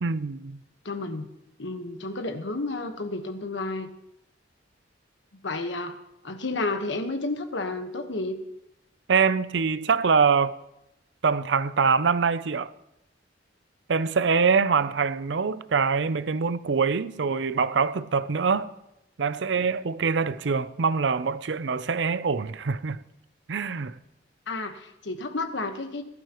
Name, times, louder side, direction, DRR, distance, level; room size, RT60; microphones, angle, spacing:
voice 1, 0.0-0.6 9.1-10.6 11.2-12.7 13.9-18.7 19.2-23.0 23.5-24.0, right 5 dB, 70° right, 0.5 m, -24 dB
voice 2, 0.8-1.2 1.6-3.9 5.4-6.0 6.2-8.4 24.5-26.0, left 2 dB, 75° left, 1.3 m, -31 dB
19.0 x 12.0 x 3.0 m
head